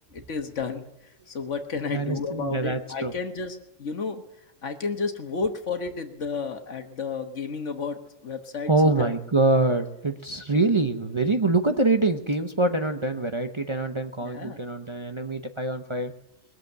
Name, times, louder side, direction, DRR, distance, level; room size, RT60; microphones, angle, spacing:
voice 1, 0.1-4.2 4.6-9.1 14.2-14.6, left 4 dB, 70° left, 6 dB, 1.6 m, -32 dB
voice 2, 1.9-3.1 8.7-16.1, right 2 dB, 30° right, 5 dB, 0.7 m, -24 dB
21.0 x 7.7 x 7.8 m, 0.94 s
omnidirectional pair, 1.3 m